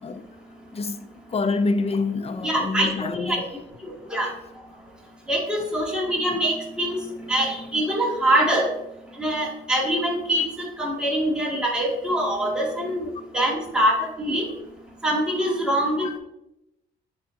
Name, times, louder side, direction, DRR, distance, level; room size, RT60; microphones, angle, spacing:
voice 1, 0.7-3.4 6.3-6.4 16.0-16.2, left 3 dB, 30° left, 0.6 m, -27 dB
voice 2, 2.4-3.4 4.1-4.3 5.3-7.0 7.3-8.7 9.2-13.1 13.3-14.4 15.0-16.2, right 1 dB, 5° right, 2.1 m, -24 dB
10.0 x 4.0 x 2.7 m
cardioid pair, 90°, 20 cm